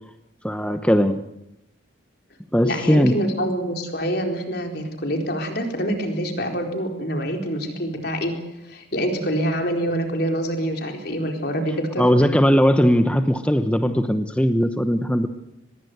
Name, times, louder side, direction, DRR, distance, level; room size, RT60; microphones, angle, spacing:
voice 1, 0.4-1.2 2.5-3.2 12.0-15.3, equal, 5° left, 9 dB, 1.0 m, -19 dB
voice 2, 2.6-8.3 8.6-12.0, equal, 50° left, 3 dB, 4.3 m, -26 dB
24.0 x 21.0 x 8.0 m, 0.89 s
head